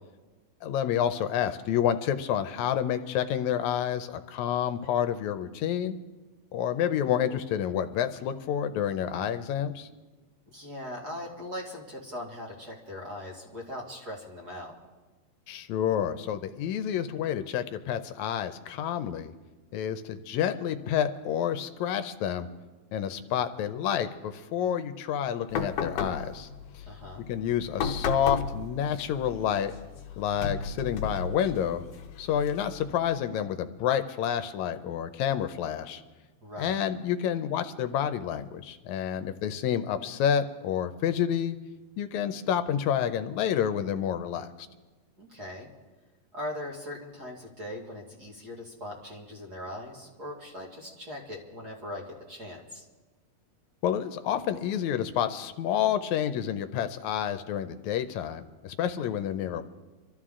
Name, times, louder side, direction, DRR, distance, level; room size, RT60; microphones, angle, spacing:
voice 1, 0.6-6.0 6.5-9.9 15.5-19.3 19.7-22.5 22.9-26.5 26.7-26.8 27.3-29.7 30.2-31.8 32.2-36.0 36.6-41.6 42.0-44.5 53.8-59.6, left 9 dB, 85° left, 10 dB, 2.0 m, -29 dB
voice 2, 10.5-14.7 26.9-27.3 36.4-36.8 45.2-45.7 46.3-52.9, left 1 dB, 35° right, -1 dB, 2.3 m, -40 dB
sound 1, 25.5-33.0, left 5 dB, 70° left, 1.9 m, -35 dB
25.5 x 13.5 x 3.7 m, 1.2 s
omnidirectional pair, 3.3 m